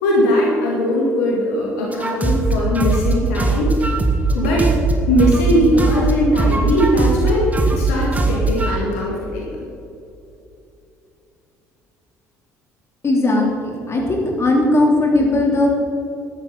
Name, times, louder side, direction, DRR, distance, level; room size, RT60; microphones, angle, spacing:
voice 1, 0.0-3.8 4.3-4.7 5.1-9.5, equal, 70° left, -3 dB, 2.3 m, -19 dB
sound 1, 1.9-5.5 5.8-8.7, right 3 dB, 15° right, 2.1 m, -19 dB
voice 2, 13.0-15.7, left 2 dB, 30° left, -1 dB, 3.5 m, -17 dB
14.5 x 12.0 x 4.1 m, 2.7 s
figure-of-eight pair, 55°, 9 cm